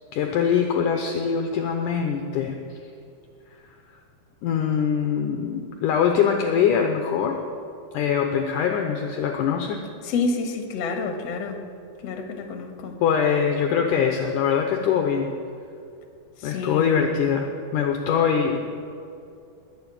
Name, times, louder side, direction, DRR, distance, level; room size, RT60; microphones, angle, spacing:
voice 1, 0.1-2.5 4.4-7.4 7.9-9.8 13.0-15.3 16.4-18.6, left 7 dB, 75° left, 4 dB, 2.0 m, -23 dB
voice 2, 10.0-11.6 12.0-13.0 16.4-17.1, left 4 dB, 50° left, 4 dB, 2.1 m, -28 dB
20.5 x 7.1 x 8.9 m, 2.6 s
omnidirectional pair, 4.6 m